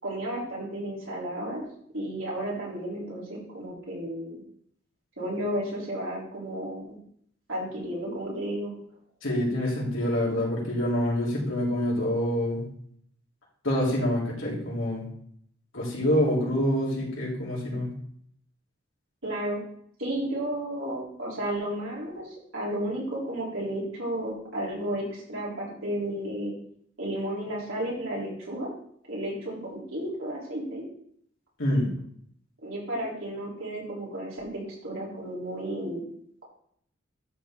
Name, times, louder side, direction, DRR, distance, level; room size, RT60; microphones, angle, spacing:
voice 1, 0.0-1.6 1.9-4.3 5.2-7.0 7.5-8.7 19.2-19.6 20.0-26.5 27.0-28.7 29.1-30.8 32.6-36.0, right 1 dB, 75° right, -5 dB, 3.7 m, -33 dB
voice 2, 9.2-12.6 13.6-15.0 15.7-17.9 31.6-31.9, left 1 dB, 75° left, -5 dB, 3.6 m, -26 dB
12.0 x 4.7 x 3.8 m, 0.66 s
head